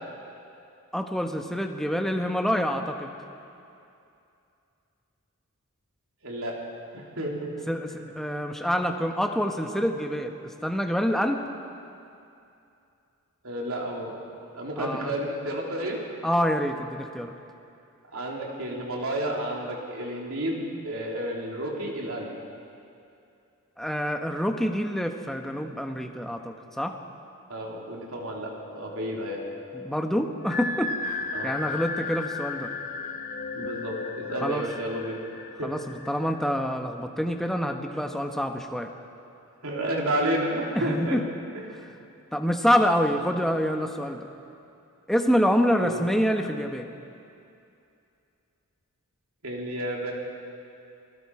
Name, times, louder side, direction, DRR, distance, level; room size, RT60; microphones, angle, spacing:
voice 1, 0.9-3.1 7.7-7.9 8.1-11.4 14.8-15.1 16.2-17.3 23.8-26.9 29.7-32.7 34.4-34.6 35.6-38.9 40.7-41.2 42.3-44.3 45.1-46.9, equal, ahead, 4 dB, 1.1 m, -26 dB
voice 2, 6.2-6.6 6.9-8.0 13.4-14.1 14.5-16.0 18.1-20.6 20.8-22.3 27.5-29.4 31.3-31.6 33.5-35.2 35.6-35.7 39.6-41.2 41.6-41.9 45.8-46.0 49.4-50.1, right 1 dB, 65° right, -2 dB, 3.5 m, -31 dB
sound 1, 28.2-36.5, left 4 dB, 35° left, 0.9 m, -36 dB
28.0 x 20.0 x 4.9 m, 2.6 s
head